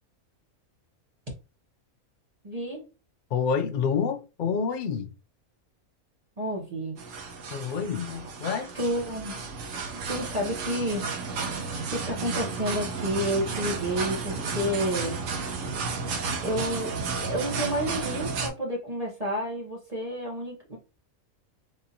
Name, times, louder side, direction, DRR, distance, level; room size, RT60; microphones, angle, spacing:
voice 1, 2.4-2.9 6.4-7.0 8.7-9.4 10.1-15.2 16.4-20.8, equal, 35° right, 0.7 m, -30 dB
voice 2, 3.3-5.1 7.5-8.7, left 6 dB, 85° left, 0.4 m, -28 dB
sound 1, 7.0-18.5, right 4 dB, 70° right, 1.0 m, -32 dB
3.8 x 2.6 x 2.7 m
omnidirectional pair, 1.5 m